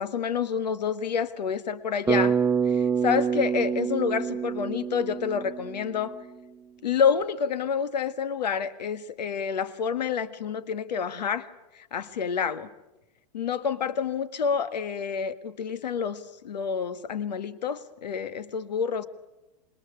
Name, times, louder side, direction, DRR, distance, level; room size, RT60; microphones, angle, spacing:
voice 1, 0.0-2.4 2.7-6.2 6.8-11.5 11.7-12.7 13.3-19.1, left 7 dB, 85° left, 13 dB, 1.6 m, -28 dB
Bass guitar, 2.1-6.2, right 6 dB, 10° right, 0.9 m, -27 dB
26.5 x 22.5 x 8.9 m, 0.97 s
hypercardioid pair, 120°, 21 cm